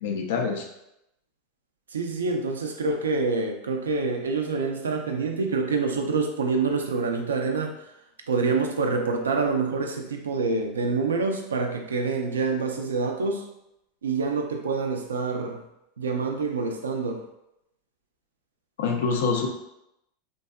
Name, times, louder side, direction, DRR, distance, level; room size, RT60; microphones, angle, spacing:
voice 1, 0.0-0.7 18.8-19.5, left 5 dB, 70° left, 2 dB, 0.4 m, -25 dB
voice 2, 1.9-7.7 8.3-13.5 14.0-15.6 16.0-17.2, right 4 dB, 85° right, 3 dB, 0.3 m, -26 dB
2.6 x 2.2 x 2.2 m, 0.85 s
hypercardioid pair, 90°, 0 cm